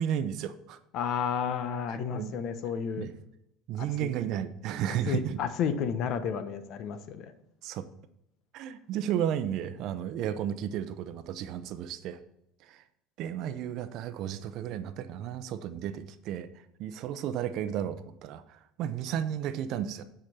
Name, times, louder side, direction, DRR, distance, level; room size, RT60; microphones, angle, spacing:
voice 1, 0.0-0.8 2.1-2.3 3.0-3.1 3.7-5.4 7.6-7.9 8.5-12.2 12.6-12.8 13.2-16.5 16.8-20.0, right 10 dB, 60° right, 12 dB, 0.7 m, -33 dB
voice 2, 0.9-3.1 3.8-4.1 5.1-7.3, left 7 dB, 55° left, 11 dB, 1.0 m, -32 dB
9.0 x 5.1 x 5.6 m, 0.81 s
supercardioid pair, 120°, 0 cm